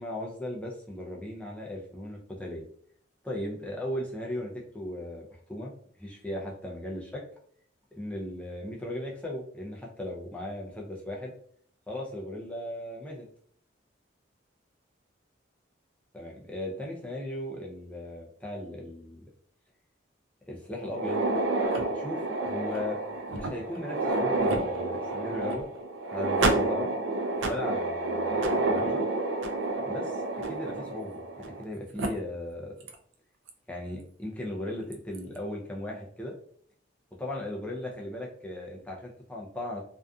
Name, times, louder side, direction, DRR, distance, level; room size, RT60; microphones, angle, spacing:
voice 1, 0.0-2.7 3.2-5.7 6.0-7.2 7.9-11.3 11.9-13.3 16.1-19.2 20.5-21.2 21.9-23.0 23.3-25.7 26.1-27.0 27.4-29.1 29.9-32.8 33.7-36.3 37.2-39.8, left 1 dB, 5° left, -2 dB, 0.4 m, -37 dB
sound 1, 20.9-31.6 32.0-32.1 32.9-33.0 33.5-33.6 34.9-35.2, right 2 dB, 90° right, 0.4 m, -29 dB
2.5 x 2.3 x 2.3 m, 0.62 s
head